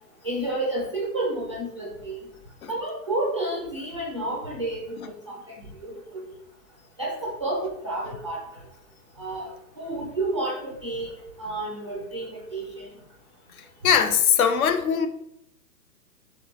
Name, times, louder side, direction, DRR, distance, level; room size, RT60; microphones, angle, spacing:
voice 1, 0.2-2.3 2.7-6.3 7.0-8.4 9.2-9.5 9.8-12.9, right 2 dB, 20° right, -3 dB, 0.3 m, -30 dB
voice 2, 13.6-15.1, left 7 dB, 60° left, 9 dB, 0.6 m, -21 dB
4.3 x 3.2 x 3.0 m, 0.83 s
hypercardioid pair, 130°, 48 cm